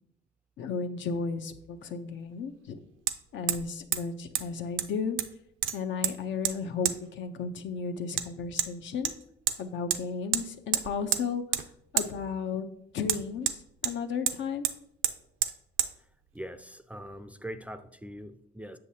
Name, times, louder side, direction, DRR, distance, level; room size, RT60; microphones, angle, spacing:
voice 1, 0.6-2.8 3.3-5.2 5.7-9.1 9.6-11.4 11.9-12.7 12.9-14.7, left 5 dB, 70° left, 0.7 m, -34 dB
Hammer, 1.1-1.2 3.1-3.2 3.5-3.7 3.9-4.0 4.4-4.5 4.8-5.3 5.6-6.1 6.5-6.6 6.9-7.0 8.2-8.3 8.6-8.7 9.1-9.6 9.9-10.0 10.3-10.4 10.7-11.2 11.5-11.7 12.0-12.1 13.1-14.0 14.3-14.4 14.6-14.8 15.0-15.2 15.4-15.5 15.8-15.9, right 11 dB, 80° right, 0.5 m, -28 dB
voice 2, 16.3-18.8, equal, 5° right, 0.4 m, -42 dB
7.9 x 6.4 x 2.8 m
cardioid pair, 90°, 20 cm